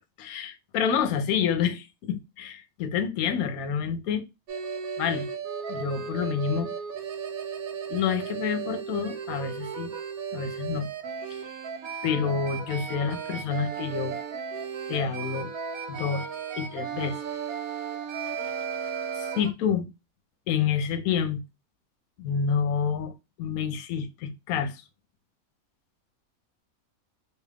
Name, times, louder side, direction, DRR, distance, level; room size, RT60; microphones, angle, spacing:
voice 1, 0.0-4.2 5.0-5.3 5.7-6.7 7.9-9.9 10.3-10.9 11.3-11.4 12.0-14.2 14.9-15.5 15.9-16.2 16.6-17.2 19.2-19.9 20.5-21.4 22.2-23.1 23.4-24.8, left 7 dB, 80° left, 1.0 m, -28 dB
sound 1, 4.5-19.5, right 6 dB, 80° right, 1.0 m, -35 dB
2.8 x 2.4 x 3.3 m
omnidirectional pair, 1.5 m